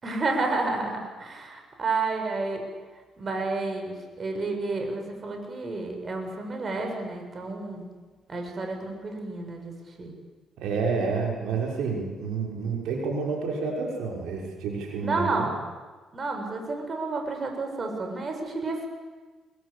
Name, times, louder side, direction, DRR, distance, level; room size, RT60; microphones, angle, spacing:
voice 1, 0.0-2.6 3.2-7.8 8.3-10.1 15.0-15.5 16.1-18.9, right 3 dB, 40° right, 3 dB, 6.8 m, -30 dB
voice 2, 10.6-15.5, right 4 dB, 90° right, 0 dB, 5.9 m, -29 dB
26.0 x 23.0 x 8.6 m, 1.3 s
cardioid pair, 90°, 0 cm